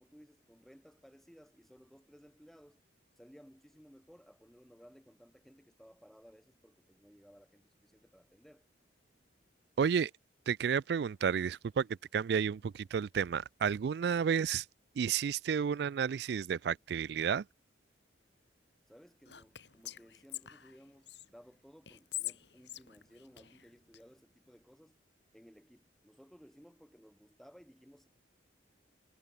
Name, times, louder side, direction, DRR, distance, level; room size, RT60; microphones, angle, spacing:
voice 1, 0.0-2.8 3.2-8.6 18.9-25.0 25.3-28.1, equal, ahead, 7.3 m, -59 dB
voice 2, 9.8-10.1 10.5-11.9 12.1-14.6 15.0-17.4, right 7 dB, 55° right, 0.3 m, -31 dB
Whispering, 19.3-21.3 21.9-24.0, left 13 dB, 65° left, 3.3 m, -44 dB
head